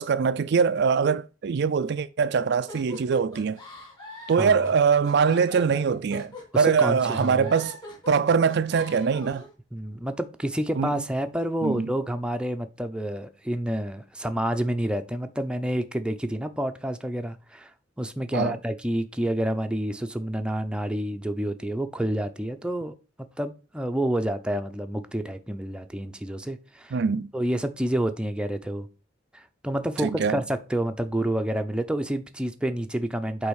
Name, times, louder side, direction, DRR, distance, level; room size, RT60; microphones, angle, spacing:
voice 1, 0.0-3.6 4.3-7.8 8.1-9.5 10.8-11.0 11.6-11.9 18.3-18.6 26.9-27.3 30.0-30.4, right 6 dB, 60° right, 0.4 m, -23 dB
sound 1, 2.7-9.5, left 2 dB, 20° left, 2.4 m, -42 dB
voice 2, 6.5-7.5 9.7-17.7 18.0-22.9 23.4-27.0 27.3-28.9 29.3-33.5, right 1 dB, 5° right, 0.6 m, -29 dB
8.5 x 3.5 x 6.4 m
head